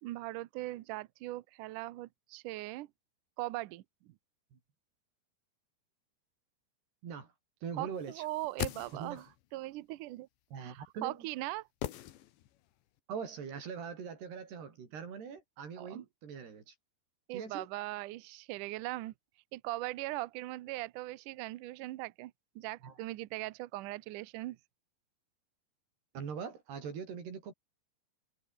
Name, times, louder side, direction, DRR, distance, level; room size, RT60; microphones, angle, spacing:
voice 1, 0.0-2.9 3.4-4.2 7.8-9.3 9.5-10.3 10.6-11.7 15.8-16.1 17.3-19.1 19.5-24.6, right 18 dB, 85° right, 1.8 m, -40 dB
voice 2, 7.6-8.3 8.9-9.2 10.5-11.3 13.1-16.7 17.3-17.7 22.8-22.9 26.1-27.5, right 6 dB, 70° right, 6.5 m, -42 dB
sound 1, 8.2-9.4 11.8-12.7 13.0-13.1, left 13 dB, 85° left, 3.8 m, -40 dB
omnidirectional pair, 5.0 m